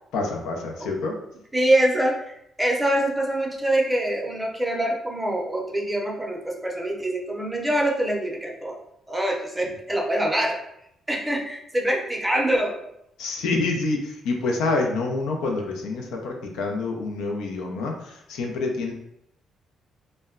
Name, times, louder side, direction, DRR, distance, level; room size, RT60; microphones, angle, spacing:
voice 1, 0.1-1.1 13.2-18.9, left 3 dB, 90° left, 1 dB, 0.5 m, -27 dB
voice 2, 1.5-8.8 9.1-10.6 11.1-12.8, right 1 dB, 10° right, -1 dB, 0.6 m, -24 dB
2.1 x 2.1 x 3.6 m, 0.77 s
cardioid pair, 90°, 0 cm